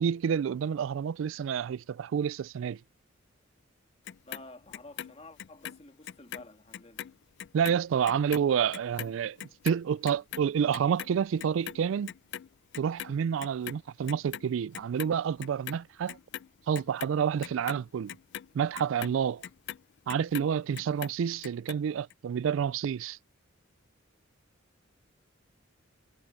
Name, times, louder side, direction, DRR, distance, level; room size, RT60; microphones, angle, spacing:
voice 1, 0.0-2.8 7.5-12.1 12.8-16.2 16.7-18.2 18.5-19.4 20.1-23.2, right 7 dB, 70° right, 0.3 m, -29 dB
Clock, 4.1-6.5 6.7-13.1 13.4-14.5 14.7-15.8 16.1-20.5 20.8-21.8 22.1-22.2, left 11 dB, 60° left, 0.4 m, -41 dB
voice 2, 4.3-7.1, left 2 dB, 30° left, 1.9 m, -50 dB
head